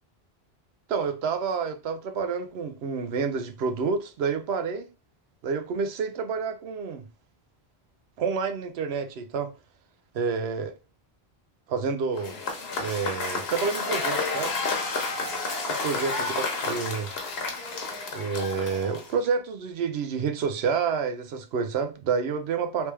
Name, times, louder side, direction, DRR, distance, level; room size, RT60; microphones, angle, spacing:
voice 1, 0.9-4.9 5.4-7.0 8.2-9.5 10.1-10.7 11.7-12.4 12.8-14.5 15.8-17.1 18.1-22.9, right 5 dB, 75° right, 0.8 m, -29 dB
Cheering / Applause / Crowd, 12.2-19.2, left 3 dB, 70° left, 1.1 m, -30 dB
3.3 x 3.1 x 3.1 m
omnidirectional pair, 1.1 m